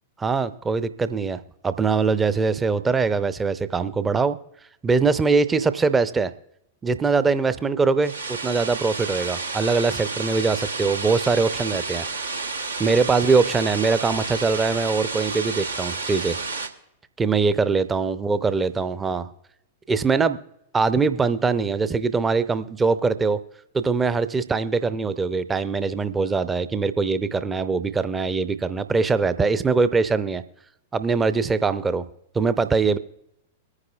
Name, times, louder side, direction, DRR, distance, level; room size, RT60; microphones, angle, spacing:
voice 1, 0.2-4.4 4.8-6.3 6.8-12.3 12.8-16.4 17.2-19.3 19.9-20.4 20.7-23.4 23.7-30.4 30.9-32.1 32.3-33.0, right 4 dB, 15° right, 13 dB, 0.6 m, -22 dB
sound 1, 8.0-16.7, right 4 dB, 80° right, 0.8 m, -30 dB
23.0 x 9.7 x 2.3 m, 0.80 s
figure-of-eight pair, 100°, 0 cm